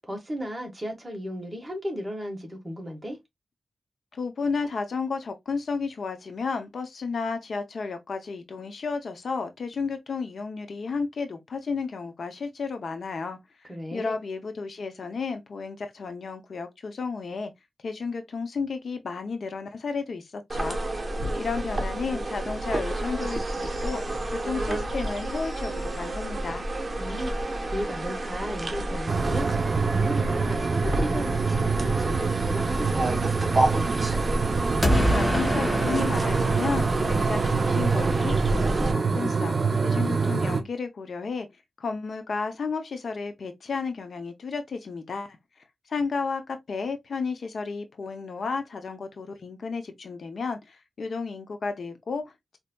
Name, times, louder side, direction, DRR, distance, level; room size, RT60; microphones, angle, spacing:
voice 1, 0.1-3.2 13.7-14.1 27.0-33.9, equal, 15° right, 1.4 m, -35 dB
voice 2, 4.1-17.5 17.8-20.8 21.4-24.0 24.3-26.6 34.8-41.5 41.8-45.4 45.9-52.6, left 4 dB, 65° left, 0.6 m, -32 dB
sound 1, 20.5-38.9, right 1 dB, 35° right, 0.9 m, -30 dB
sound 2, 29.1-40.6, right 4 dB, 50° right, 0.5 m, -25 dB
sound 3, 34.8-37.7, equal, 15° left, 0.7 m, -27 dB
4.2 x 2.7 x 2.2 m
wide cardioid pair, 110°, 0 cm